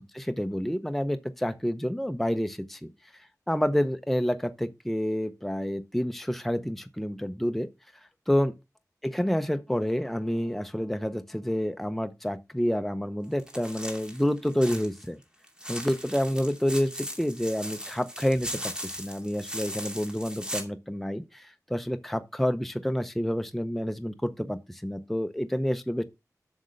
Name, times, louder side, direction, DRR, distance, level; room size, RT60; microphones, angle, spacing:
voice 1, 0.0-2.9 3.5-7.7 8.3-8.5 9.0-15.2 15.7-26.0, equal, 5° left, 0.6 m, -29 dB
sound 1, 13.4-15.1 15.4-20.6, equal, 15° right, 2.5 m, -38 dB
7.9 x 6.6 x 6.4 m
wide cardioid pair, 80°, 6 cm